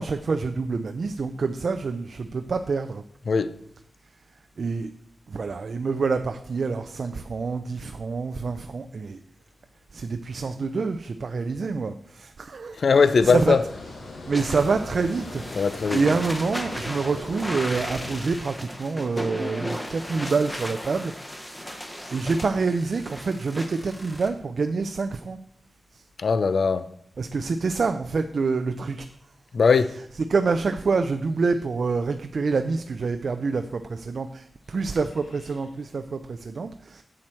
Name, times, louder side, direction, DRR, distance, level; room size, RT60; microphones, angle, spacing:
voice 1, 0.0-3.0 4.6-4.9 5.3-9.2 9.9-12.8 13.2-13.5 14.3-15.7 15.9-21.1 21.5-21.8 22.1-25.4 25.9-26.0 27.2-29.1 30.3-37.0, right 4 dB, 50° right, 0.4 m, -27 dB
voice 2, 12.8-13.6 15.6-16.0 26.2-26.9 29.5-30.0, left 5 dB, 55° left, 0.4 m, -20 dB
Water, 12.9-18.2, left 2 dB, 70° left, 1.6 m, -39 dB
sound 1, 14.3-24.3, equal, 10° left, 1.0 m, -36 dB
7.7 x 7.4 x 4.4 m
wide cardioid pair, 175°, 0 cm